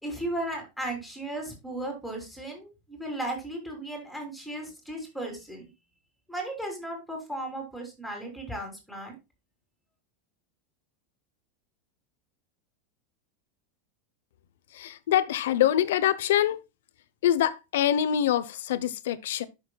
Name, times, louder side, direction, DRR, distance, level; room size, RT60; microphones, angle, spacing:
voice 1, 0.0-5.7 6.3-9.2, right 1 dB, ahead, 3.3 m, -35 dB
voice 2, 14.7-16.6 17.2-19.5, left 11 dB, 85° left, 0.8 m, -25 dB
10.5 x 6.4 x 2.3 m
supercardioid pair, 165°, 0 cm